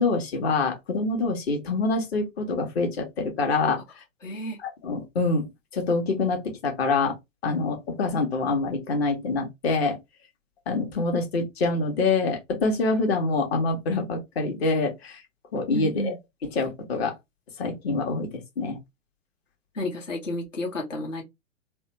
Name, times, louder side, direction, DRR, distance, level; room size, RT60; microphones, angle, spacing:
voice 1, 0.0-3.8 4.6-5.5 5.7-7.1 7.4-10.0 10.7-15.2 15.5-16.1 16.5-17.1 17.6-18.3 18.6-18.8, left 3 dB, 50° left, 1.3 m, -25 dB
voice 2, 4.2-4.6 15.7-16.2 19.7-21.2, left 1 dB, 75° left, 1.5 m, -31 dB
3.4 x 2.3 x 2.9 m
figure-of-eight pair, 110°, 39 cm